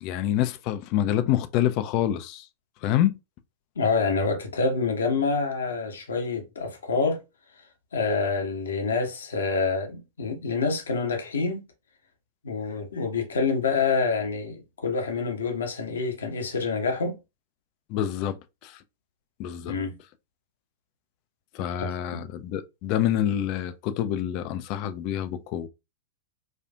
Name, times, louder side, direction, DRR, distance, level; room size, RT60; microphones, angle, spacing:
voice 1, 0.0-2.5 2.8-3.1 17.9-18.3 18.6-18.8 19.4-19.7 21.5-25.7, left 11 dB, 40° left, 0.4 m, -26 dB
voice 2, 3.8-7.2 7.9-11.6 12.4-17.2 19.7-19.9 21.8-22.2, left 4 dB, 70° left, 0.9 m, -27 dB
4.3 x 2.4 x 2.3 m
figure-of-eight pair, 95°, 0 cm